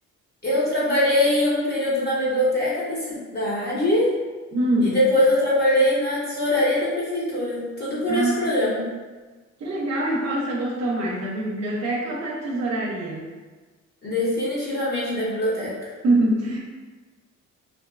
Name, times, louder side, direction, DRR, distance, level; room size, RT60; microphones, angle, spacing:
voice 1, 0.4-4.1 4.8-8.8 14.0-15.7, left 1 dB, 35° left, -8 dB, 0.8 m, -22 dB
voice 2, 4.5-5.0 8.1-8.4 9.6-13.3 16.0-16.6, right 1 dB, 60° right, -3 dB, 0.6 m, -24 dB
2.5 x 2.2 x 2.3 m, 1.3 s
cardioid pair, 90°, 30 cm